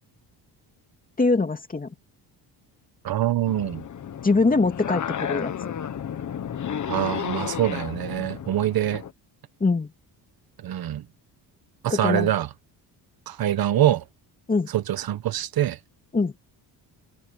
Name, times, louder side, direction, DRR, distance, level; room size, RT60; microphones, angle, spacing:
voice 1, 1.2-1.9 4.2-5.7 9.6-9.9 11.9-12.3 14.5-14.7 16.1-16.3, left 3 dB, 20° left, 2.7 m, -23 dB
voice 2, 3.0-3.8 6.9-9.0 10.6-11.0 11.8-12.5 13.3-14.0 14.7-15.8, right 12 dB, 60° right, 1.3 m, -24 dB
sound 1, 3.5-9.1, left 8 dB, 45° left, 1.6 m, -32 dB
cardioid pair, 115°, 42 cm